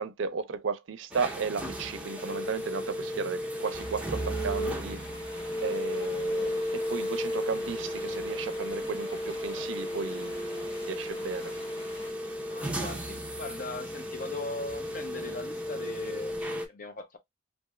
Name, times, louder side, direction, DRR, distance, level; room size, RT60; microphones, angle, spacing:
voice 1, 0.0-5.0 5.6-10.4 10.9-11.5, right 5 dB, 70° right, 0.4 m, -34 dB
sound 1, 1.1-16.7, equal, 5° right, 0.6 m, -34 dB
sound 2, 3.6-12.1, left 1 dB, 30° left, 1.4 m, -49 dB
voice 2, 12.4-17.2, left 3 dB, 45° left, 0.7 m, -40 dB
2.6 x 2.3 x 3.0 m
head